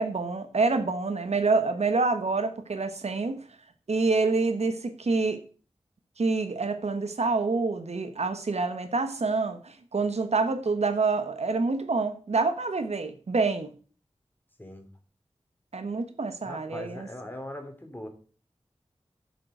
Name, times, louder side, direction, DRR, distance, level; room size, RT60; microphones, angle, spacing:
voice 1, 0.0-3.4 3.9-5.4 6.2-13.7 15.7-17.1, right 3 dB, 80° right, 9 dB, 1.2 m, -27 dB
voice 2, 16.4-18.1, left 1 dB, 20° left, 4 dB, 2.9 m, -40 dB
7.6 x 6.8 x 7.7 m, 0.40 s
wide cardioid pair, 65°, 11 cm